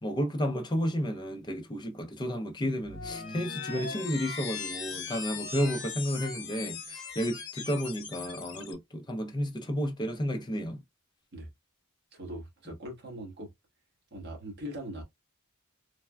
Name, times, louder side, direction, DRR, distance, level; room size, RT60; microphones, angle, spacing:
voice 1, 0.0-10.8, equal, 20° left, 0.5 m, -32 dB
sound 1, 2.8-8.7, left 5 dB, 55° left, 1.1 m, -39 dB
voice 2, 12.1-13.5 14.1-15.0, equal, 50° right, 1.2 m, -41 dB
3.3 x 2.1 x 2.2 m
head